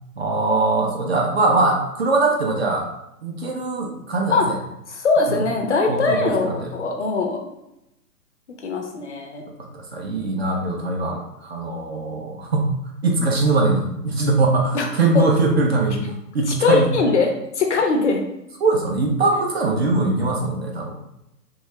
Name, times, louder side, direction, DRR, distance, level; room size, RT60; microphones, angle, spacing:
voice 1, 0.2-2.9 3.2-4.6 5.3-5.4 5.9-6.7 9.6-12.7 13.0-16.0 16.3-16.9 18.6-21.0, right 3 dB, 40° right, 0 dB, 0.4 m, -21 dB
voice 2, 4.9-7.4 8.6-9.4 14.7-14.9 15.1-15.3 16.5-18.2, left 4 dB, 50° left, 3 dB, 0.4 m, -21 dB
2.7 x 2.3 x 3.0 m, 0.86 s
figure-of-eight pair, 125°, 49 cm